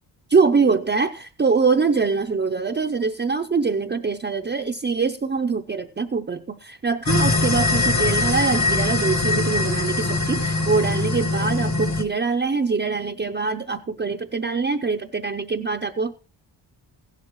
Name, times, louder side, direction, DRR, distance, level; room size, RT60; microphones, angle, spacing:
voice 1, 0.3-16.1, right 4 dB, 25° right, 2 dB, 0.6 m, -23 dB
sound 1, 7.1-12.0, left 3 dB, 35° left, 1.3 m, -22 dB
15.5 x 12.0 x 3.1 m, 0.34 s
wide cardioid pair, 110°, 46 cm